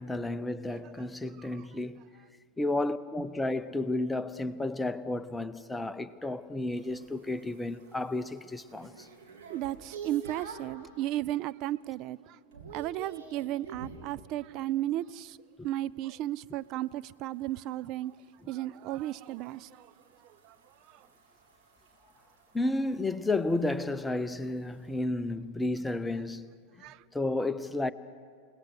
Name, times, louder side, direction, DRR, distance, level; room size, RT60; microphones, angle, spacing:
voice 1, 0.0-2.1 2.6-9.1 22.5-26.5 27.1-27.9, left 2 dB, 5° left, 0.7 m, -32 dB
sound 1, 6.7-10.8 11.3-11.7 12.0-14.1 16.6-25.0, right 5 dB, 55° right, 3.4 m, -50 dB
voice 2, 9.5-12.4 12.7-15.4 15.6-18.1 18.5-19.9 26.8-27.0, right 14 dB, 40° right, 0.4 m, -34 dB
29.5 x 18.5 x 6.3 m
figure-of-eight pair, 90°, 0 cm